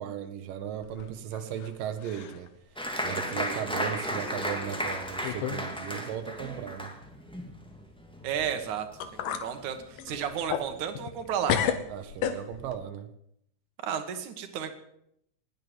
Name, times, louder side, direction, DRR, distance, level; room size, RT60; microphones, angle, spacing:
voice 1, 0.0-2.5 3.0-6.9 11.9-13.1, right 9 dB, 90° right, 8 dB, 2.7 m, -36 dB
sound 1, 0.8-1.7 2.0-2.5 2.9-3.0 3.9-4.0 4.7-4.8 5.2-5.6 5.9-6.0 8.6-8.7 9.0-9.5 10.0-11.2 11.5-12.8, left 8 dB, 80° left, 2.8 m, -32 dB
Applause, 2.8-9.8 10.1-10.8 11.2-11.3 11.6-12.1, equal, ahead, 1.4 m, -35 dB
voice 2, 8.2-8.9 9.1-11.6 13.8-14.7, right 8 dB, 65° right, 7 dB, 2.8 m, -32 dB
20.0 x 8.6 x 7.8 m, 0.75 s
omnidirectional pair, 3.8 m